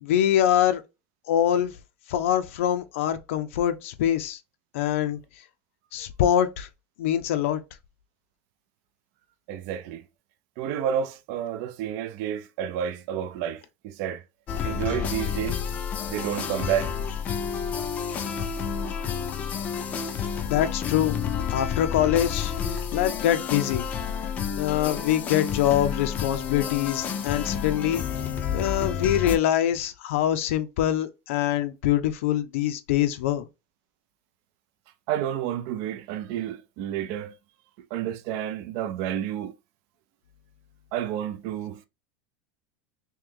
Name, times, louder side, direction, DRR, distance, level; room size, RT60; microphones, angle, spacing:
voice 1, 0.0-0.8 1.3-1.7 2.1-4.4 4.7-5.2 5.9-6.7 7.0-7.6 20.5-21.2 21.5-23.9 24.6-28.0 28.5-33.5, left 11 dB, 90° left, 0.5 m, -24 dB
voice 2, 9.5-10.0 10.6-14.2 14.6-15.6 16.1-17.0 35.1-37.3 37.9-39.5 40.9-41.9, right 10 dB, 45° right, 0.4 m, -30 dB
sound 1, 14.5-29.4, left 7 dB, 20° left, 0.4 m, -30 dB
3.1 x 2.9 x 3.6 m
supercardioid pair, 170°, 7 cm